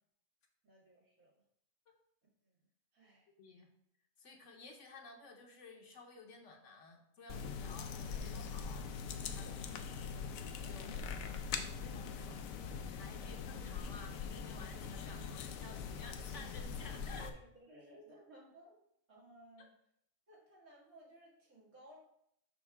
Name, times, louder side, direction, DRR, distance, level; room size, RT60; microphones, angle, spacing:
voice 1, 0.6-1.4 2.4-2.6 2.9-3.3 9.3-9.6 10.8-11.1 13.2-13.4 17.2-19.7 20.3-22.0, right 1 dB, 80° right, -5 dB, 2.5 m, -59 dB
voice 2, 4.2-9.7 10.6-11.0 11.8-12.4 12.8-17.3 19.6-19.7, left 3 dB, 60° left, 2 dB, 1.3 m, -54 dB
sound 1, 7.3-17.3, left 6 dB, 75° left, 1.0 m, -42 dB
5.8 x 3.5 x 5.8 m, 0.72 s
omnidirectional pair, 1.5 m